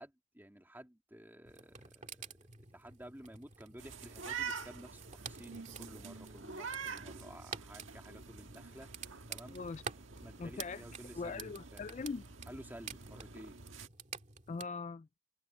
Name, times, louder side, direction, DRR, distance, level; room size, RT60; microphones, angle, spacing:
voice 1, 0.0-8.9 9.3-9.6 10.2-11.8 12.5-13.6, right 1 dB, 10° right, 2.9 m, -53 dB
sound 1, 1.5-14.7, right 6 dB, 35° right, 2.2 m, -50 dB
sound 2, 3.8-13.9, right 5 dB, 75° right, 1.7 m, -47 dB
voice 2, 9.5-9.8 10.4-10.8 11.1-12.2 14.5-15.1, left 4 dB, 35° left, 0.3 m, -41 dB
head